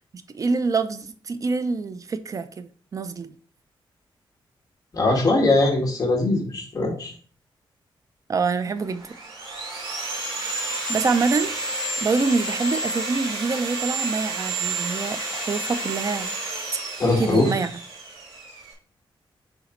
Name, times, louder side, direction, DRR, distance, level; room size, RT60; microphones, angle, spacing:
voice 1, 0.3-3.3 8.3-9.0 10.9-11.5 12.0-16.3 17.2-17.7, right 4 dB, 40° right, 0.5 m, -25 dB
voice 2, 4.9-7.1 17.0-17.5, left 2 dB, 40° left, 2.0 m, -21 dB
Sawing, 8.8-18.7, right 2 dB, 65° right, 2.4 m, -30 dB
7.2 x 4.2 x 3.8 m
wide cardioid pair, 145°, 9 cm